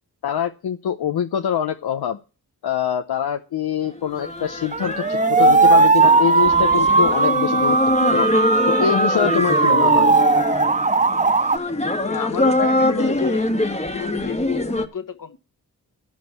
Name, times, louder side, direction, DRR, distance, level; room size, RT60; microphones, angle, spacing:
voice 1, 0.2-2.2 2.6-8.3 8.7-10.1, left 9 dB, 80° left, 7 dB, 0.8 m, -24 dB
sound 1, 3.8-14.9, left 1 dB, 15° left, 1.5 m, -23 dB
sound 2, 4.7-11.6, right 4 dB, 20° right, 0.6 m, -17 dB
voice 2, 12.0-13.5 13.8-15.4, left 6 dB, 55° left, 11 dB, 1.3 m, -30 dB
11.0 x 5.2 x 8.2 m, 0.32 s
cardioid pair, 50°, 38 cm